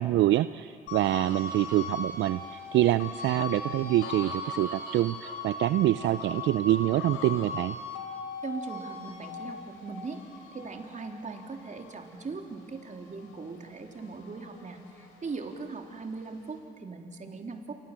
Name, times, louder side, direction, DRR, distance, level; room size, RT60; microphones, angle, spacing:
voice 1, 0.0-7.8, right 14 dB, 70° right, 15 dB, 0.6 m, -26 dB
sound 1, 0.9-13.5 13.9-15.6, left 4 dB, 80° left, 4.4 m, -39 dB
voice 2, 8.4-10.2 10.5-17.8, right 4 dB, 40° right, 3 dB, 3.7 m, -40 dB
28.5 x 25.0 x 7.6 m, 2.7 s
supercardioid pair, 60°, 20 cm